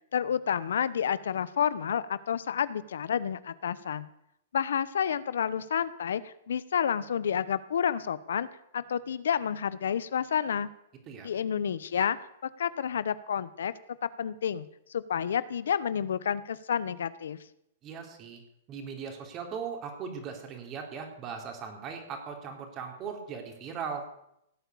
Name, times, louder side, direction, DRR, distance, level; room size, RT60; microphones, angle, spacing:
voice 1, 0.1-4.1 4.5-8.5 8.7-10.7 11.2-12.2 12.4-13.7 14.2-14.6 14.9-17.4, left 8 dB, 85° left, 16 dB, 0.9 m, -30 dB
voice 2, 17.8-18.4 18.7-24.1, right 6 dB, 30° right, 3 dB, 3.7 m, -39 dB
17.5 x 8.2 x 8.5 m, 0.79 s
hypercardioid pair, 150°, 0 cm